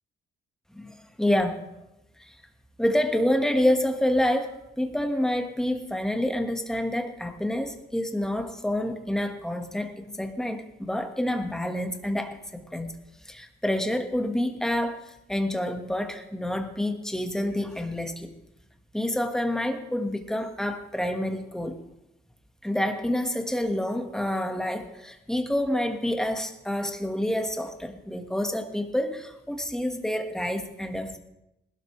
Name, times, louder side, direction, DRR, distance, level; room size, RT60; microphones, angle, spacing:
voice 1, 0.7-1.6 2.2-2.3 2.8-12.9 13.2-18.3 18.9-21.8 22.6-31.2, left 1 dB, 5° left, 5 dB, 1.5 m, -28 dB
19.5 x 12.5 x 3.2 m, 0.90 s
cardioid pair, 90°, 20 cm